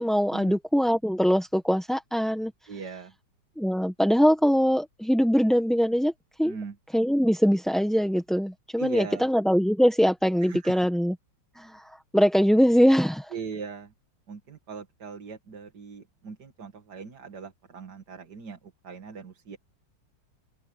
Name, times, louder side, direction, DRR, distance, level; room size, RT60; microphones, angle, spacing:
voice 1, 0.0-2.5 3.6-6.1 6.4-6.5 6.9-11.1 11.6-11.9 12.1-13.3, equal, ahead, 0.9 m, -22 dB
voice 2, 2.7-3.1 6.4-6.8 8.8-9.3 10.4-10.9 13.3-13.9 14.3-18.6 18.8-19.6, right 5 dB, 65° right, 2.5 m, -39 dB
omnidirectional pair, 2.0 m